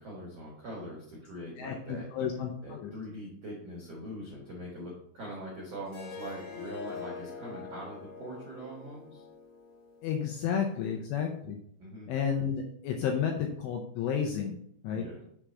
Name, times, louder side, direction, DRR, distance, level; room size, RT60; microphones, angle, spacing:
voice 1, 0.0-2.1 2.6-9.2 11.8-12.1 14.9-15.2, equal, 85° right, -4 dB, 1.4 m, -42 dB
voice 2, 1.6-2.9 10.0-11.6 12.1-14.6 14.8-15.0, left 7 dB, 80° left, 2 dB, 2.5 m, -31 dB
Harp, 5.9-11.0, left 5 dB, 60° left, 1.8 m, -45 dB
7.3 x 3.4 x 6.1 m, 0.68 s
omnidirectional pair, 5.7 m